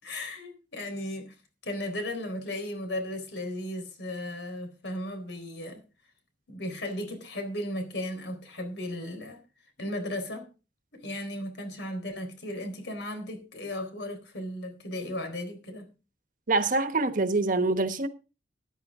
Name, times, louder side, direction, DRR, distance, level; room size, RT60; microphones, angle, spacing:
voice 1, 0.0-1.3 1.6-5.8 6.5-9.4 9.8-10.5 10.9-15.9, left 1 dB, 90° left, 4.1 m, -35 dB
voice 2, 16.5-18.1, right 3 dB, 50° right, 1.1 m, -25 dB
14.0 x 11.0 x 3.6 m
head